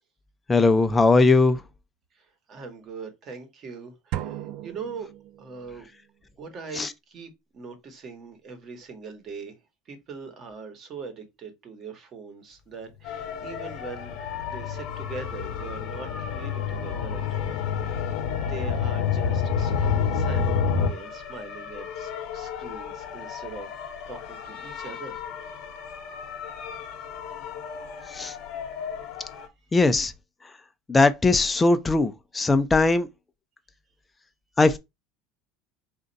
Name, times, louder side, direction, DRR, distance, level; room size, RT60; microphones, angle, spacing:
voice 1, 0.5-1.6 6.8-6.9 28.1-28.3 29.7-30.1 30.9-33.1 34.6-34.8, left 3 dB, 15° left, 0.5 m, -19 dB
voice 2, 2.1-5.1 5.4-5.9 6.4-9.6 9.9-14.1 14.5-18.1 18.5-25.2, right 4 dB, 35° right, 1.2 m, -41 dB
sound 1, 4.1-5.8, right 12 dB, 60° right, 0.4 m, -36 dB
sound 2, 13.0-29.5, left 7 dB, 55° left, 0.9 m, -38 dB
sound 3, 13.5-20.9, left 6 dB, 80° left, 0.5 m, -27 dB
4.3 x 2.5 x 3.9 m
cardioid pair, 140°, 0 cm